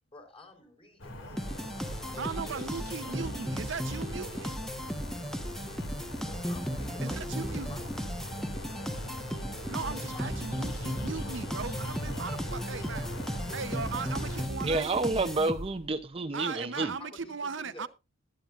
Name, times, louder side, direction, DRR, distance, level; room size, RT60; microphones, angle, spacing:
voice 1, 0.1-3.3 6.2-8.6 9.8-11.4 16.4-17.9, left 2 dB, 30° left, 4.3 m, -51 dB
sound 1, 1.0-14.5, left 1 dB, 80° left, 2.5 m, -40 dB
sound 2, 1.4-15.9, equal, ahead, 1.1 m, -36 dB
voice 2, 2.2-4.6 7.0-7.7 9.7-13.1 13.5-14.9 16.3-17.9, right 5 dB, 70° right, 0.8 m, -38 dB
voice 3, 14.6-16.9, right 3 dB, 30° right, 0.6 m, -29 dB
21.0 x 8.7 x 2.5 m
head